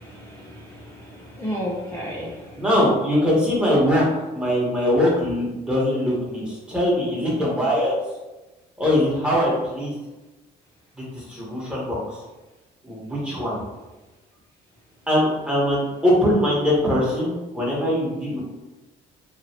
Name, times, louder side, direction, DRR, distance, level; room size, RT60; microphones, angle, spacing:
voice 1, 0.0-2.6, equal, 15° left, -4 dB, 0.5 m, -33 dB
voice 2, 2.6-4.0 4.3-8.0 8.8-9.9 11.1-12.0 12.8-13.6 15.1-18.4, left 1 dB, 5° right, -6 dB, 1.2 m, -22 dB
3.1 x 2.6 x 2.8 m, 1.1 s
cardioid pair, 110°, 17 cm